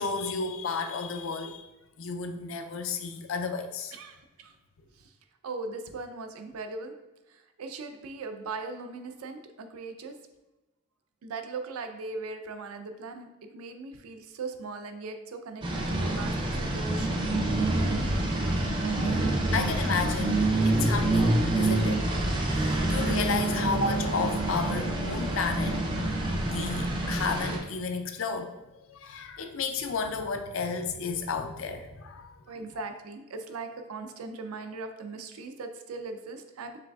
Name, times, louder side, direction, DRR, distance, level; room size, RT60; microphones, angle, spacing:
voice 1, 0.0-1.7 2.0-3.9 18.2-18.4 19.0-19.2 19.5-22.0 22.4-32.4, left 4 dB, 65° left, 7 dB, 0.4 m, -33 dB
voice 2, 3.9-4.5 5.0-5.1 5.4-6.9 7.3-10.1 11.2-17.2 32.5-36.8, right 3 dB, 85° right, 7 dB, 0.4 m, -39 dB
sound 1, 15.6-27.6, right 2 dB, 20° right, 0.5 m, -27 dB
5.0 x 3.2 x 2.3 m, 1.0 s
head